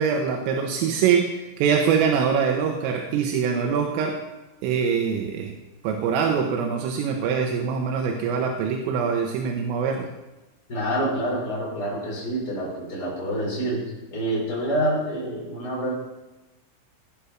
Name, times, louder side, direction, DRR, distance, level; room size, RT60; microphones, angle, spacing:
voice 1, 0.0-4.2 4.6-5.5 5.8-10.1, right 6 dB, 80° right, 2 dB, 3.9 m, -23 dB
voice 2, 10.7-15.9, right 1 dB, 20° left, -4 dB, 5.9 m, -27 dB
20.0 x 10.0 x 6.0 m, 1.0 s
omnidirectional pair, 5.8 m